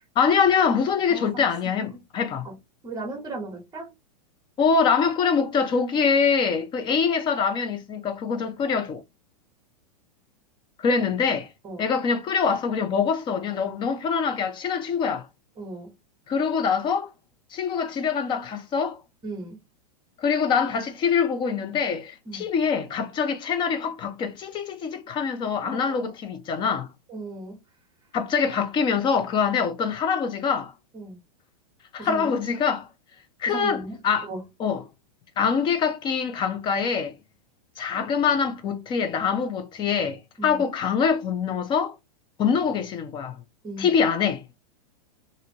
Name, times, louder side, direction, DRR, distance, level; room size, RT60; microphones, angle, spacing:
voice 1, 0.2-2.5 4.6-9.0 10.8-11.5 11.8-15.3 16.3-17.1 17.5-19.0 20.2-26.9 28.1-30.7 31.9-32.8 33.4-33.8 34.0-34.3 34.6-34.8 35.4-37.1 37.8-41.9 42.4-43.4 43.8-44.4, left 6 dB, 25° left, 0.6 m, -24 dB
voice 2, 1.1-2.0 2.4-2.6 2.8-3.9 11.6-11.9 15.6-15.9 19.2-19.6 22.3-22.5 25.6-26.1 27.1-27.6 30.9-31.2 32.0-32.4 33.5-34.4 40.4-40.6 43.6-43.9, right 2 dB, 20° right, 1.1 m, -37 dB
2.8 x 2.6 x 2.8 m
hypercardioid pair, 135°, 21 cm